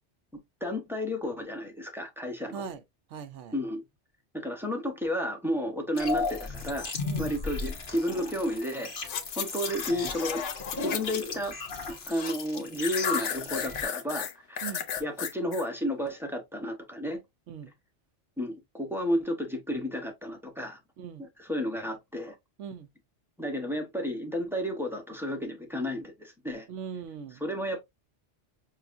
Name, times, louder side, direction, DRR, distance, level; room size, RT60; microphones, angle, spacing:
voice 1, 0.6-2.6 3.5-3.8 4.3-6.9 7.2-8.9 9.4-10.4 10.8-11.5 11.9-14.7 15.0-17.2 18.4-20.8 21.4-22.3 23.4-26.7 27.4-27.8, equal, ahead, 0.8 m, -32 dB
voice 2, 3.1-3.6 7.0-7.3 14.6-14.8 17.5-17.7 21.0-21.3 22.6-22.9 26.7-27.4, right 7 dB, 90° right, 1.0 m, -40 dB
sound 1, 6.0-13.8, left 4 dB, 50° left, 1.2 m, -35 dB
sound 2, 9.0-11.4 11.7-12.4 12.8-15.6 16.1-16.2, left 8 dB, 85° left, 1.1 m, -34 dB
6.6 x 2.4 x 2.5 m
omnidirectional pair, 1.2 m